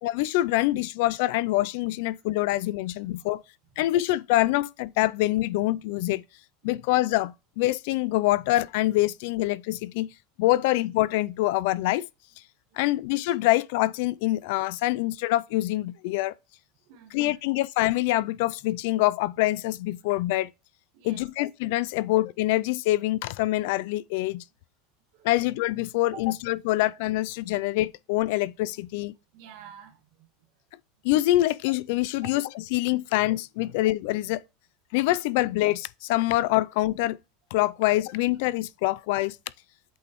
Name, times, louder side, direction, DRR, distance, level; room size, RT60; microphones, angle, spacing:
voice 1, 0.0-3.4 3.8-6.2 6.6-10.1 10.4-12.1 12.8-16.3 17.1-20.5 21.0-24.4 25.2-29.1 31.0-32.4 32.7-34.4 34.9-37.2 37.5-39.4, left 17 dB, 65° left, 0.3 m, -25 dB
voice 2, 2.9-3.3 3.7-3.8 6.6-6.8 12.7-12.8 16.8-17.4 20.9-21.2 25.1-25.3 26.0-26.2 29.0-30.5 32.2-32.4 33.6-33.7, right 8 dB, 60° right, 1.7 m, -50 dB
8.2 x 4.2 x 3.0 m
supercardioid pair, 155°, 0 cm